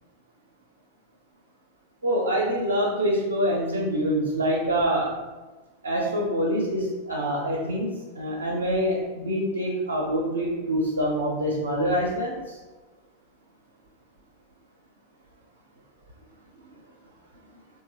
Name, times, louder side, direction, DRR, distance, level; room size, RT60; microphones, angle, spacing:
voice 1, 2.0-5.1 5.8-12.6, equal, 75° right, -2 dB, 0.5 m, -25 dB
3.1 x 2.2 x 3.1 m, 1.2 s
figure-of-eight pair, 90°, 0 cm